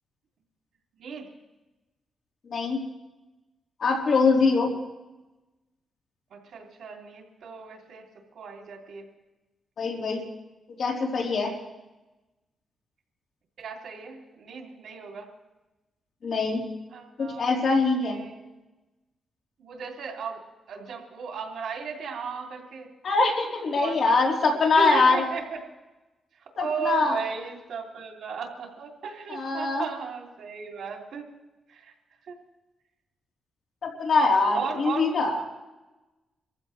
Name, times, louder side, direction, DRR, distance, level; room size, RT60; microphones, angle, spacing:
voice 1, 1.0-1.3 6.3-8.0 8.3-9.0 13.6-15.3 16.9-17.5 18.0-18.4 19.6-20.4 20.7-22.9 23.7-24.2 24.8-25.6 26.4-31.2 31.7-31.9 32.3-32.4 34.5-35.1, right 6 dB, 85° right, 0 dB, 2.7 m, -36 dB
voice 2, 3.8-4.7 9.8-10.2 10.8-11.5 16.2-16.6 17.2-18.2 23.0-25.2 26.6-27.2 29.3-29.8 33.8-35.4, left 3 dB, 60° left, -1 dB, 3.5 m, -23 dB
28.0 x 15.0 x 3.2 m, 1.1 s
cardioid pair, 120°, 0 cm